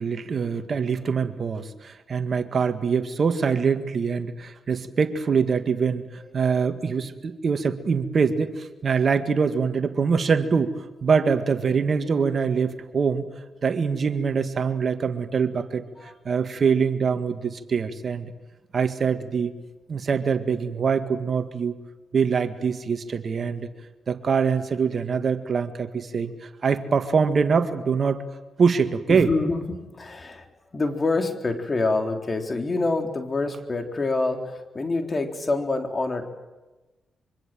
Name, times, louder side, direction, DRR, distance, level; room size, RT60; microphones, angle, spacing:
voice 1, 0.0-10.7 11.0-13.3 13.6-18.3 18.7-19.5 19.9-21.7 22.1-23.7 24.1-28.2 28.6-29.3, right 6 dB, 55° right, 9 dB, 1.8 m, -24 dB
voice 2, 29.1-30.5 30.7-36.3, left 3 dB, 40° left, 4 dB, 3.8 m, -26 dB
25.0 x 24.5 x 7.8 m, 1.2 s
supercardioid pair, 50°, 0 cm